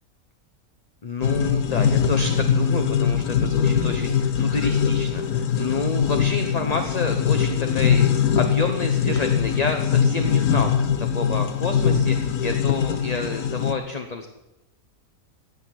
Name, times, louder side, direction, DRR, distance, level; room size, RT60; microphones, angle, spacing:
voice 1, 1.0-10.8 11.1-14.3, left 4 dB, 30° left, 5 dB, 0.9 m, -29 dB
sound 1, 1.2-13.7, left 7 dB, 80° left, 1.5 m, -22 dB
17.5 x 6.5 x 9.1 m, 0.94 s
omnidirectional pair, 1.5 m